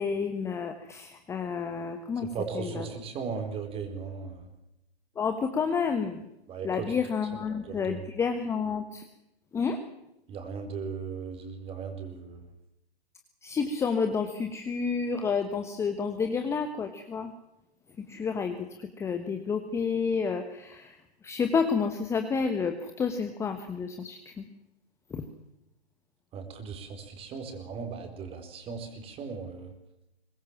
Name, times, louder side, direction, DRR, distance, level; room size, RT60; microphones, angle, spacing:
voice 1, 0.0-2.3 2.5-2.9 5.2-6.2 6.6-9.0 9.5-9.8 13.4-17.3 18.1-21.0 21.2-24.4 25.1-25.2, left 5 dB, 10° left, 7 dB, 1.3 m, -30 dB
voice 2, 2.2-4.4 6.5-6.9 7.3-8.0 10.3-12.4 26.3-29.7, right 5 dB, 20° right, 7 dB, 4.3 m, -37 dB
23.5 x 20.0 x 7.3 m, 0.87 s
figure-of-eight pair, 130°, 31 cm